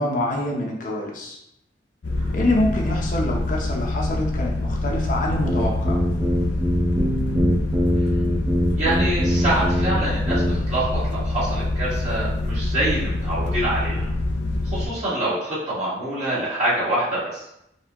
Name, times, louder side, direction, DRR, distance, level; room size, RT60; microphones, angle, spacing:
voice 1, 0.0-1.4 2.3-6.0, left 1 dB, 50° left, -1 dB, 0.9 m, -25 dB
sound 1, 2.0-14.9, left 2 dB, 85° left, 0.6 m, -25 dB
sound 2, 5.5-10.0 10.3-10.5, equal, 20° right, 0.8 m, -22 dB
voice 2, 8.7-14.1 14.6-17.4, right 1 dB, 40° right, -9 dB, 1.5 m, -25 dB
4.3 x 3.5 x 2.9 m, 0.79 s
head